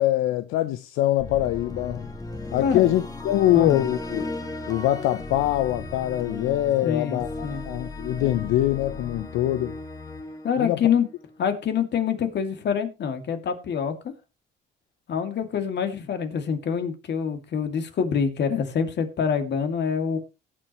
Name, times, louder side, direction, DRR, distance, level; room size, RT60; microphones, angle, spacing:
voice 1, 0.0-2.1 2.5-4.3 4.7-9.8 10.6-10.9, left 14 dB, 80° left, 0.7 m, -24 dB
sound 1, 1.2-11.4, left 2 dB, 15° left, 2.1 m, -36 dB
voice 2, 6.8-7.6 10.4-11.1 11.4-13.9 15.1-20.2, left 7 dB, 55° left, 2.4 m, -25 dB
17.5 x 7.6 x 3.1 m
supercardioid pair, 85°, 21 cm